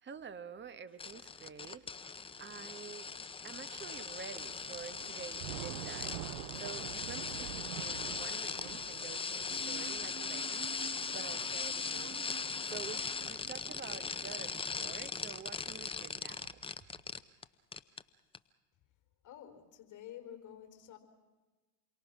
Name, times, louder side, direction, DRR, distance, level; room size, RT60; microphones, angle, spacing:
voice 1, 0.0-2.1 2.4-3.1 3.4-16.6, right 6 dB, 20° right, 13 dB, 1.2 m, -49 dB
sound 1, 1.0-17.4 17.7-18.0 18.3-18.4, left 5 dB, 10° left, 0.7 m, -39 dB
Thunder / Rain, 3.5-13.5, right 16 dB, 65° right, 0.9 m, -48 dB
sound 2, 9.5-14.8, right 12 dB, 90° right, 1.0 m, -52 dB
voice 2, 19.2-21.0, left 10 dB, 35° left, 6 dB, 4.4 m, -50 dB
28.5 x 23.5 x 6.0 m, 1.2 s
hypercardioid pair, 95°, 49 cm